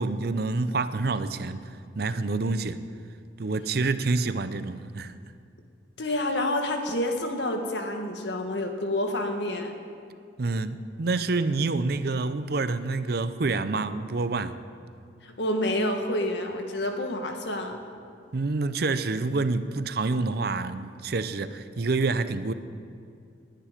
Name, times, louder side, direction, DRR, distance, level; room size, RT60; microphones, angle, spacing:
voice 1, 0.0-1.6 2.0-2.8 3.4-5.1 10.4-14.6 18.3-22.5, right 3 dB, 55° right, 12 dB, 0.6 m, -27 dB
voice 2, 6.0-9.7 15.2-17.8, left 1 dB, 70° left, 4 dB, 1.6 m, -28 dB
20.0 x 10.0 x 5.1 m, 2.4 s
head